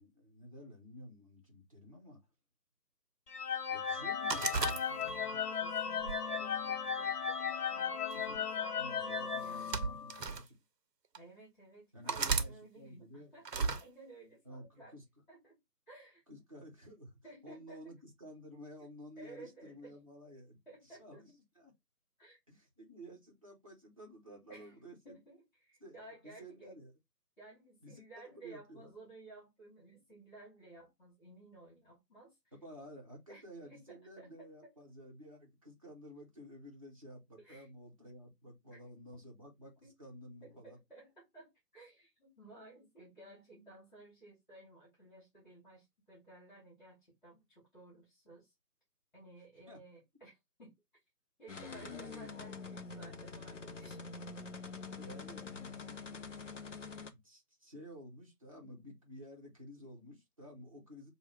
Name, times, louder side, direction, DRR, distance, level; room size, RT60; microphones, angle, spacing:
voice 1, 0.0-2.2 3.7-5.1 8.3-8.4 8.8-10.5 11.9-13.3 14.5-15.0 16.3-20.6 21.0-21.7 22.5-25.2 25.8-26.0 26.2-26.9 27.8-28.9 32.5-40.8 49.7-49.8 51.8-52.3 54.9-56.2 57.1-61.1, equal, 20° right, 0.8 m, -52 dB
sound 1, 3.3-10.3, left 6 dB, 70° left, 0.9 m, -36 dB
sound 2, 4.3-5.4 6.0-7.1 8.1-8.4 9.4-10.4 11.1-11.2 12.1-12.5 13.4-13.8, right 5 dB, 85° right, 0.8 m, -35 dB
voice 2, 5.0-9.8 11.1-15.0 15.3-15.6 15.9-16.2 17.2-18.0 19.2-20.0 20.6-21.2 22.2-22.4 24.5-24.8 25.0-26.7 27.4-32.5 33.3-34.7 37.4-37.7 38.7-38.8 39.8-39.9 40.4-48.5 49.1-50.7 51.4-54.0, right 2 dB, 30° left, 2.9 m, -56 dB
sound 3, 51.5-57.1, left 4 dB, 50° left, 0.5 m, -46 dB
5.6 x 2.3 x 3.2 m
figure-of-eight pair, 155°, 49 cm